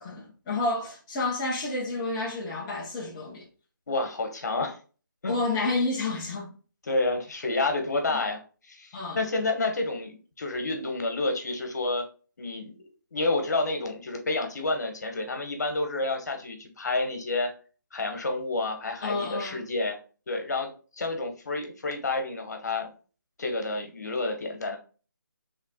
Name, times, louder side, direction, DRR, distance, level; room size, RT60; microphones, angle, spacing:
voice 1, 0.0-3.5 5.3-6.6 8.1-8.2 8.9-9.2 19.0-19.6, left 3 dB, 15° left, 0.9 m, -30 dB
voice 2, 3.9-4.8 5.2-5.4 6.8-12.0 12.4-12.8 13.1-17.5 17.9-20.0 20.3-20.7 21.0-22.9 23.4-24.8, left 2 dB, 55° left, 1.3 m, -29 dB
4.5 x 3.4 x 2.3 m
figure-of-eight pair, 165°, 11 cm